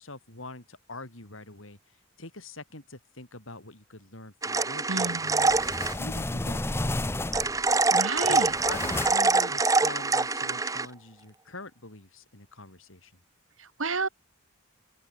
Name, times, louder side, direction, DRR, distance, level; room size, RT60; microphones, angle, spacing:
voice 1, 0.0-1.8 2.2-5.5 6.0-7.4 8.2-13.1, left 2 dB, 75° left, 5.6 m, -44 dB
sound 1, 4.4-6.0 7.3-10.9, right 3 dB, 15° right, 1.1 m, -25 dB
voice 2, 4.9-5.7 7.9-8.5 13.6-14.1, right 3 dB, 75° right, 2.9 m, -32 dB
sound 2, 5.2-7.7 8.2-9.4, left 2 dB, 10° left, 0.6 m, -32 dB
open air
head